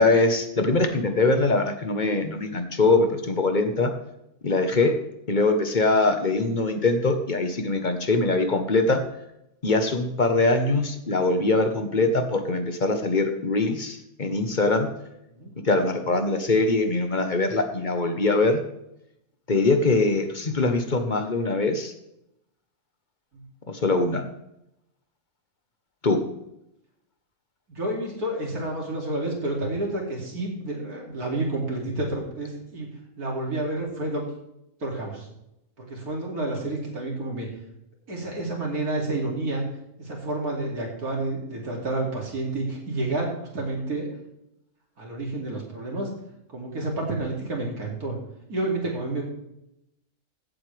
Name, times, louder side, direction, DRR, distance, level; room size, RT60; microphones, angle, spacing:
voice 1, 0.0-3.9 4.4-4.9 5.3-9.0 9.6-14.9 15.6-18.6 19.5-21.9 23.7-24.3 26.0-26.2, left 3 dB, 35° left, 6 dB, 1.2 m, -22 dB
voice 2, 27.7-32.9 33.2-34.2 34.8-35.3 35.8-37.5 38.1-39.6 40.0-44.1 45.0-46.1 46.5-48.2 48.5-49.2, right 2 dB, 80° right, -1 dB, 3.3 m, -29 dB
15.5 x 7.9 x 3.4 m, 0.82 s
omnidirectional pair, 1.6 m